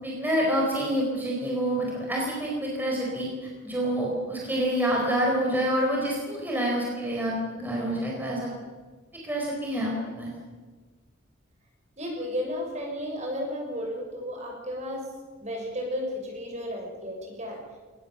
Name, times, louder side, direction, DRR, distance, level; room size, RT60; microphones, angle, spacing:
voice 1, 0.0-8.5 9.2-10.3, equal, 10° right, -3 dB, 4.5 m, -27 dB
voice 2, 12.0-15.1 15.4-17.6, equal, 35° right, 1 dB, 6.3 m, -33 dB
21.5 x 19.5 x 7.1 m, 1.4 s
head